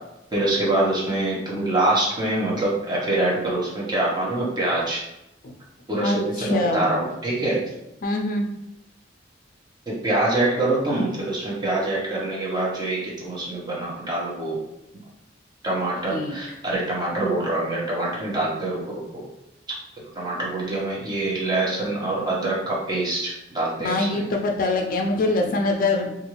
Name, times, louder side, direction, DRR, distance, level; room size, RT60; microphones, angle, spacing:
voice 1, 0.3-5.0 5.9-7.6 9.9-14.6 15.6-19.2 20.1-24.2, right 2 dB, 25° right, -5 dB, 0.8 m, -25 dB
voice 2, 6.0-7.0 8.0-8.5 16.1-16.3 23.8-26.1, left 2 dB, 50° left, 2 dB, 0.4 m, -24 dB
2.5 x 2.4 x 3.0 m, 0.87 s
head